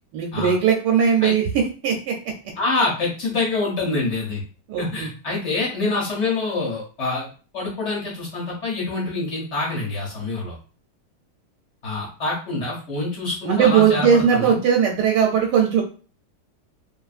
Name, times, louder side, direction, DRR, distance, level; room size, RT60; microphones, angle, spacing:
voice 1, 0.1-2.1 4.7-5.1 13.4-15.8, right 7 dB, 85° right, 1 dB, 1.2 m, -19 dB
voice 2, 2.6-4.4 4.8-7.3 7.5-10.6 11.8-14.6, left 3 dB, 55° left, -4 dB, 0.9 m, -26 dB
2.8 x 2.4 x 2.4 m, 0.38 s
omnidirectional pair, 1.8 m